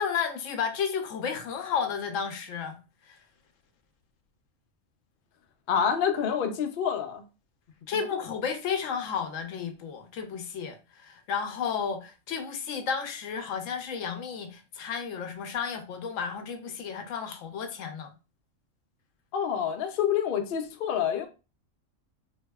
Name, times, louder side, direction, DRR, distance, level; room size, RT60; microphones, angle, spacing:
voice 1, 0.0-2.8 3.1-3.2 7.9-18.1, left 6 dB, 75° left, 0.9 m, -32 dB
voice 2, 5.7-7.2 19.3-21.3, left 8 dB, 60° left, 0.6 m, -27 dB
4.0 x 2.7 x 2.3 m
omnidirectional pair, 1.4 m